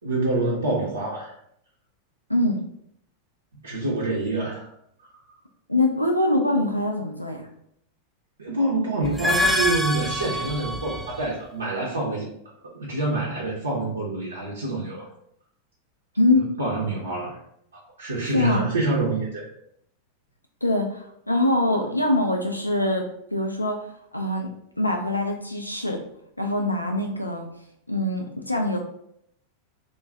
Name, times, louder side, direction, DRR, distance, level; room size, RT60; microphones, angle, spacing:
voice 1, 0.0-1.3 3.5-4.7 8.4-12.3 12.7-15.1 16.6-17.4 17.7-19.4, right 2 dB, 75° right, -5 dB, 0.6 m, -26 dB
voice 2, 5.7-7.4 16.2-16.5 18.2-18.7 20.6-23.0 23.3-24.5 24.8-26.0 26.4-27.5 27.9-28.8, left 1 dB, 85° left, 2 dB, 0.3 m, -23 dB
sound 1, 9.0-11.3, left 1 dB, ahead, 0.3 m, -25 dB
2.5 x 2.2 x 3.3 m, 0.72 s
figure-of-eight pair, 90°, 0 cm